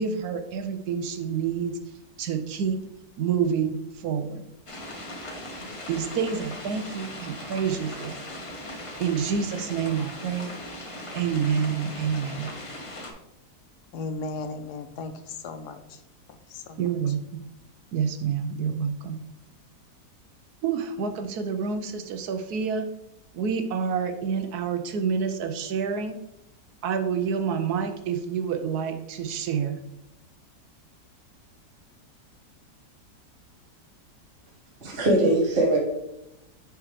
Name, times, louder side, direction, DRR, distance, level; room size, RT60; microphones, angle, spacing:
voice 1, 0.0-1.8 2.2-2.8 3.2-4.4 5.9-8.2 9.0-10.5 11.1-12.5 16.8-17.5 17.9-19.2 20.6-22.9 23.3-26.2 26.8-29.8, right 6 dB, 70° right, 8 dB, 1.1 m, -28 dB
sound 1, 4.7-13.1, left 1 dB, 30° left, 0.6 m, -39 dB
voice 2, 13.9-16.0 16.3-16.9, left 3 dB, 75° left, 8 dB, 1.2 m, -36 dB
voice 3, 34.8-35.8, right 1 dB, 35° right, -3 dB, 1.4 m, -21 dB
9.7 x 3.6 x 3.1 m, 0.88 s
omnidirectional pair, 1.9 m